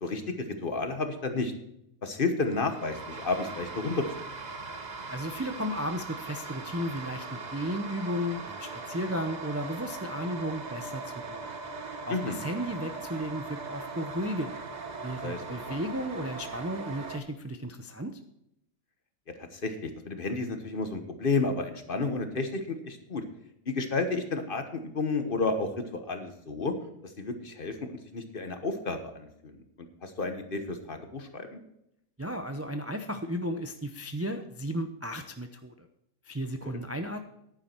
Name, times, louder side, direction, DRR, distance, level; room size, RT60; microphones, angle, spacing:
voice 1, 0.0-1.5 2.0-4.0 12.1-12.4 15.2-15.8 19.5-23.2 23.7-26.7 27.0-29.5 30.0-31.6 36.6-36.8, left 3 dB, 40° left, 7 dB, 1.3 m, -31 dB
sound 1, 2.5-17.2, right 4 dB, 35° right, 1.0 m, -40 dB
voice 2, 5.1-11.5 12.1-14.5 15.0-18.2 32.2-35.9 36.3-37.2, equal, 20° right, 6 dB, 0.4 m, -34 dB
10.5 x 9.7 x 4.5 m, 0.78 s
omnidirectional pair, 1.4 m